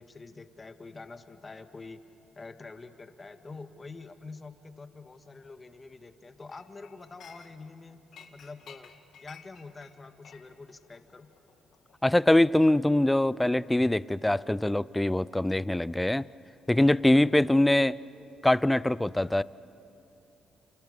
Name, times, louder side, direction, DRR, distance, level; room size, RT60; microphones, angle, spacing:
voice 1, 0.0-2.1 2.3-8.0 8.3-8.9 9.2-11.3 17.1-17.5, left 3 dB, 30° left, 8 dB, 1.7 m, -46 dB
Chink clink, 6.5-7.8 8.1-12.7 13.0-13.2, left 7 dB, 70° left, 2.0 m, -54 dB
voice 2, 12.0-16.3 16.7-18.0 18.4-19.4, left 1 dB, 10° left, 19 dB, 0.5 m, -23 dB
29.0 x 29.0 x 6.8 m, 3.0 s
cardioid pair, 90°, 0 cm